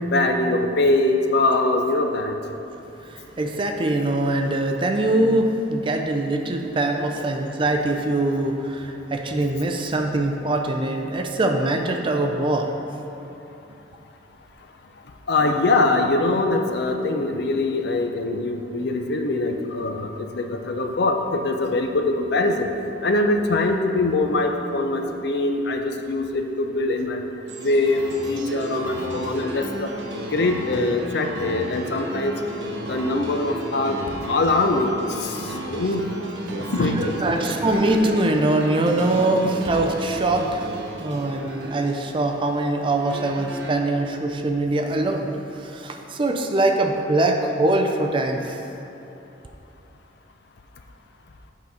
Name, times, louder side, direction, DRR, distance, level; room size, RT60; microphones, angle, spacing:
voice 1, 0.1-2.4 7.2-7.3 15.3-22.7 23.0-27.2 27.6-29.9 30.3-32.4 32.9-34.0 34.3-34.9 35.2-36.1 36.5-37.3, left 2 dB, 60° left, 5 dB, 0.5 m, -23 dB
voice 2, 3.0-12.7 36.9-40.7 41.0-45.3 45.6-48.6, right 2 dB, 25° right, 3 dB, 0.4 m, -23 dB
sound 1, 27.5-43.7, right 1 dB, 70° right, 0.8 m, -34 dB
8.2 x 4.0 x 4.9 m, 2.9 s
head